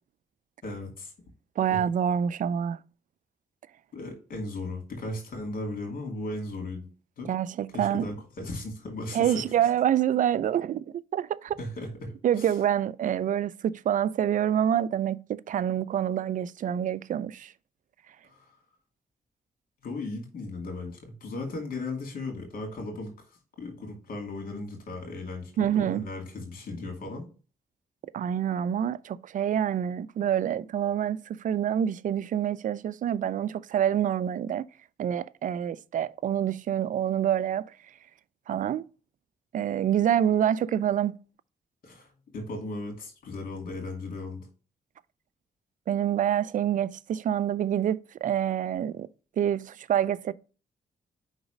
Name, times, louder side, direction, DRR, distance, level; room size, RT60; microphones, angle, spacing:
voice 1, 0.6-1.1 1.7-1.8 3.9-6.9 7.2-7.3 7.7-9.4 11.6-12.5 18.2-18.4 19.8-23.1 23.6-27.2 41.8-42.1 42.3-44.5, left 2 dB, 70° left, 2.4 m, -36 dB
voice 2, 1.6-2.8 7.2-8.1 9.1-10.8 11.1-11.6 12.2-17.5 25.6-26.0 28.1-34.7 35.0-37.7 38.5-38.8 39.5-41.1 45.9-49.1 49.4-50.3, right 10 dB, 60° right, 0.4 m, -27 dB
5.1 x 4.0 x 5.0 m
cardioid pair, 75°, 15 cm